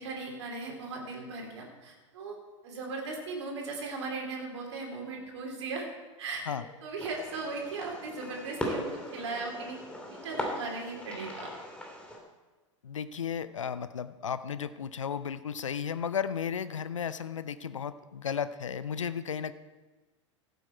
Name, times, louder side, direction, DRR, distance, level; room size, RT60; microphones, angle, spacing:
voice 1, 0.0-2.4 2.6-5.9 6.2-6.4 6.8-9.8 10.1-11.5, right 3 dB, 65° right, 0 dB, 3.2 m, -38 dB
Fireworks, 7.0-12.2, equal, 5° left, 2.8 m, -39 dB
voice 2, 12.8-19.5, left 7 dB, 80° left, 14 dB, 0.7 m, -34 dB
15.5 x 8.2 x 4.5 m, 1.2 s
figure-of-eight pair, 90°, 16 cm